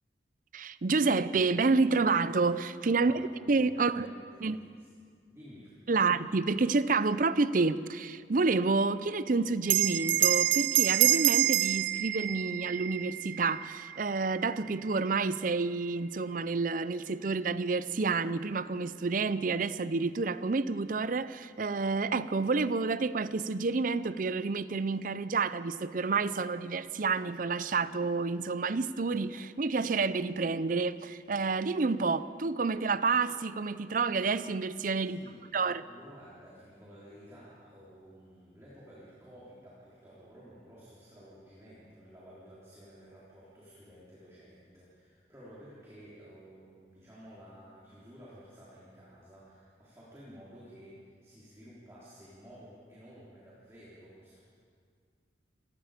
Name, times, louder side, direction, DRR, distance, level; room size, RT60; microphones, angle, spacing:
voice 1, 0.5-3.2 3.5-4.1 4.4-4.6 5.9-35.2 35.5-35.8, right 4 dB, 45° right, 15 dB, 0.5 m, -29 dB
voice 2, 2.9-3.4 3.7-4.9 5.3-6.0 35.0-35.6 35.9-54.4, equal, 15° right, -9 dB, 3.8 m, -53 dB
Bell, 9.6-14.5, right 14 dB, 85° right, 0.6 m, -27 dB
27.5 x 18.0 x 5.1 m, 2.1 s
head